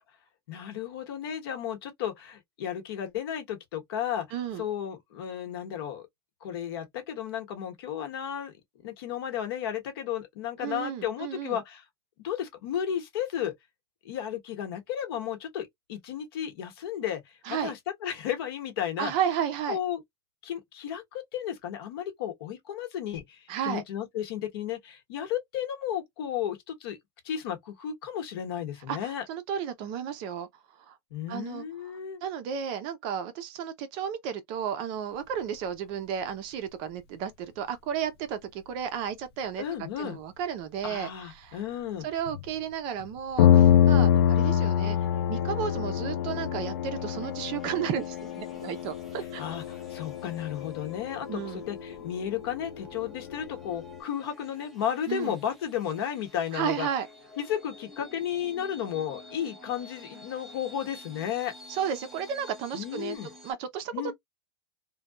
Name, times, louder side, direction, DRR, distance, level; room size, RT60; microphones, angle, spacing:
voice 1, 0.5-4.3 4.6-6.1 6.4-8.5 8.8-11.8 12.2-13.5 14.0-17.2 17.5-19.1 19.7-20.0 20.4-27.0 27.2-29.2 31.1-32.2 39.6-40.2 40.8-42.1 49.4-56.9 57.4-61.5 62.7-63.3 63.9-64.1, left 9 dB, 70° left, 1.0 m, -33 dB
voice 2, 4.3-4.6 10.6-11.6 17.4-17.7 19.0-19.8 23.5-23.8 28.9-30.5 30.8-31.0 31.3-31.7 32.2-41.6 42.0-45.0 45.3-49.4 51.3-51.6 55.1-55.4 56.5-57.1 61.7-63.2 63.4-64.1, right 8 dB, 40° right, 0.6 m, -33 dB
sound 1, 42.3-42.4 43.0-43.1 43.4-54.0, left 10 dB, 85° left, 0.4 m, -26 dB
sound 2, 44.1-63.5, left 1 dB, ahead, 0.8 m, -49 dB
2.7 x 2.2 x 2.3 m
supercardioid pair, 150°, 13 cm